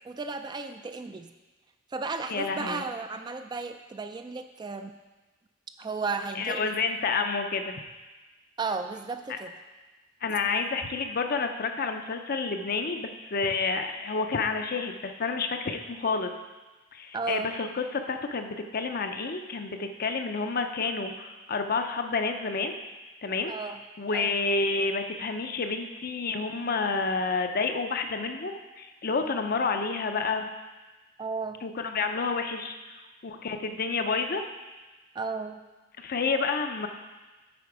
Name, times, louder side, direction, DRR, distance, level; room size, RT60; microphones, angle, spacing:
voice 1, 0.0-1.3 1.9-4.9 5.8-6.8 8.6-9.5 17.1-17.6 23.5-23.8 24.1-24.3 31.2-31.6 35.2-35.6, right 4 dB, 20° right, 7 dB, 0.3 m, -34 dB
voice 2, 2.3-2.8 6.4-7.8 9.3-9.4 10.2-16.3 16.9-22.7 23.2-23.5 24.0-30.5 31.6-32.8 33.2-34.4 36.0-36.9, left 4 dB, 50° left, 6 dB, 0.6 m, -29 dB
8.6 x 5.2 x 4.7 m, 1.2 s
head